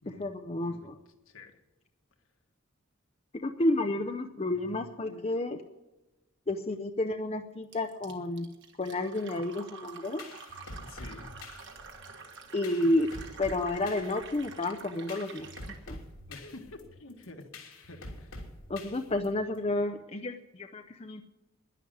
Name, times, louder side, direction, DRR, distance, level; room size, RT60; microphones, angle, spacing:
voice 1, 0.2-1.0 3.3-5.6 6.5-8.5 8.8-10.2 12.5-13.1 13.4-15.5 15.9-16.0 18.7-21.2, left 2 dB, 30° left, 6 dB, 0.6 m, -31 dB
voice 2, 1.3-1.6 10.8-11.3 16.3-18.4, left 2 dB, 70° left, 4 dB, 1.7 m, -49 dB
Fill (with liquid), 7.7-15.8, right 5 dB, 55° right, 1.6 m, -48 dB
sound 1, 9.9-19.6, left 2 dB, 85° left, 3.1 m, -46 dB
11.0 x 11.0 x 9.4 m, 1.0 s
head